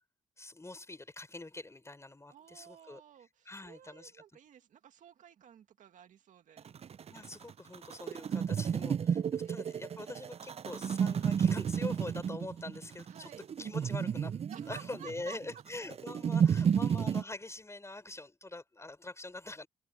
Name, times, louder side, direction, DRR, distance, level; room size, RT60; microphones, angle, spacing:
voice 1, 0.4-3.0 3.4-4.1 7.1-14.4 14.7-19.7, left 2 dB, 20° left, 4.7 m, -44 dB
voice 2, 2.3-6.7 9.4-10.3 13.1-13.5 14.5-15.6 16.5-16.8, right 9 dB, 80° right, 2.2 m, -54 dB
sound 1, 6.6-17.2, right 7 dB, 50° right, 0.5 m, -32 dB
cardioid pair, 60°, 13 cm